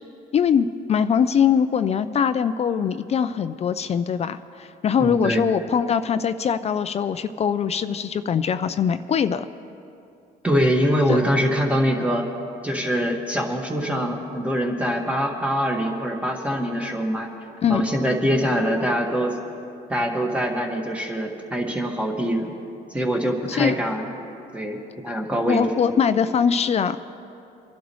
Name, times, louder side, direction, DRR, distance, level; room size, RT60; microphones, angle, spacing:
voice 1, 0.3-9.5 11.1-11.2 17.6-17.8 23.5-23.8 25.5-27.0, left 7 dB, 40° left, 11 dB, 0.5 m, -22 dB
voice 2, 5.0-5.5 10.4-12.3 12.6-17.3 17.7-19.4 19.9-22.5 22.9-24.1 24.5-25.7, equal, 5° right, 0 dB, 1.8 m, -24 dB
25.5 x 11.5 x 3.1 m, 2.7 s
cardioid pair, 110°, 17 cm